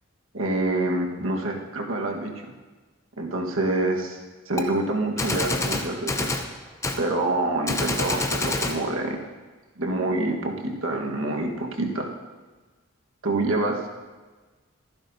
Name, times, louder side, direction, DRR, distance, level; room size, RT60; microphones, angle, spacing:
voice 1, 0.3-2.3 3.2-4.2 4.5-6.5 7.0-9.2 9.8-12.1 13.2-13.7, right 2 dB, 75° right, 1 dB, 1.5 m, -26 dB
Gunshot gunfire, 4.6-4.7 5.2-6.5 6.8-7.0 7.7-8.8, left 2 dB, 15° left, 0.6 m, -27 dB
23.5 x 10.5 x 2.7 m, 1.3 s
head